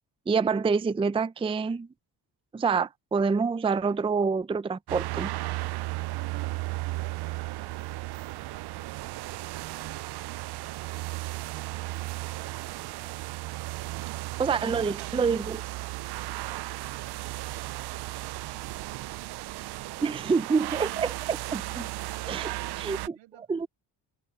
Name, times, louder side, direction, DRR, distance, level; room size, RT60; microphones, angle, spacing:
voice 1, 0.3-1.9 2.5-5.3 14.4-15.6 20.0-21.9 22.3-22.5 22.8-23.0 23.5-23.7, right 5 dB, 15° right, 0.5 m, -27 dB
sound 1, 4.9-23.1, right 18 dB, 65° right, 0.5 m, -35 dB
voice 2, 6.5-7.6 8.4-9.4 9.8-12.9 14.0-15.5 16.0-19.6 19.8-21.2 22.4-23.7, right 15 dB, 90° right, 5.5 m, -53 dB
cardioid pair, 95°, 43 cm